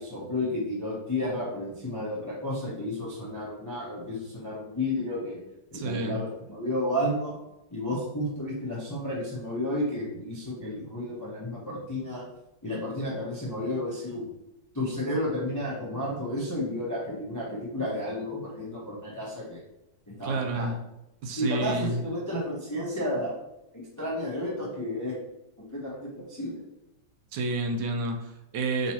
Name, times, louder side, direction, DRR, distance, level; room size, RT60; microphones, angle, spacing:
voice 1, 0.0-5.4 5.7-7.3 7.7-12.2 12.6-14.3 14.7-19.6 20.1-20.7 21.4-23.4 23.7-25.1 25.6-26.6, left 1 dB, 25° left, -5 dB, 0.4 m, -32 dB
voice 2, 5.7-6.2 20.2-20.8 21.2-22.0 27.3-28.9, right 2 dB, 80° right, 5 dB, 1.3 m, -30 dB
5.3 x 3.0 x 2.8 m, 0.89 s
omnidirectional pair, 2.0 m